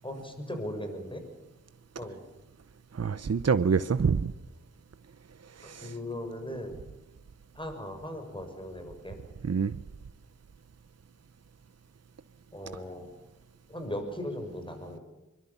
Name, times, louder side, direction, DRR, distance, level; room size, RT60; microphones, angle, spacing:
voice 1, 0.0-1.2 2.0-2.2 5.6-6.8 7.5-9.2 12.5-13.1 13.7-15.0, left 1 dB, 15° left, 5 dB, 6.6 m, -38 dB
voice 2, 2.9-4.3 5.6-5.9 9.4-9.8, right 5 dB, 55° right, 12 dB, 0.8 m, -26 dB
24.0 x 22.5 x 7.2 m, 1.1 s
wide cardioid pair, 75°, 31 cm